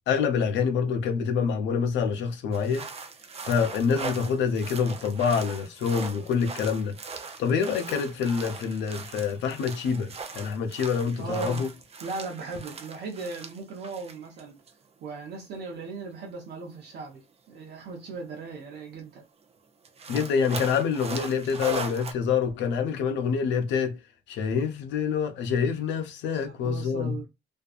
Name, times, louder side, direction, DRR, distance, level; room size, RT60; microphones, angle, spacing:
voice 1, 0.1-2.9 3.4-6.9 7.4-11.7 20.1-24.0 24.3-27.3, left 6 dB, 80° left, 0.5 m, -26 dB
sound 1, 2.5-14.4 14.7-14.8 15.9-16.0 18.1-18.2 18.6-18.7 19.0-19.1 19.9-22.1, right 4 dB, 35° right, 0.5 m, -39 dB
voice 2, 11.2-11.6 12.0-14.6 15.0-19.2 26.3-27.3, right 4 dB, 70° right, 0.8 m, -38 dB
2.6 x 2.3 x 2.4 m
cardioid pair, 115°, 18 cm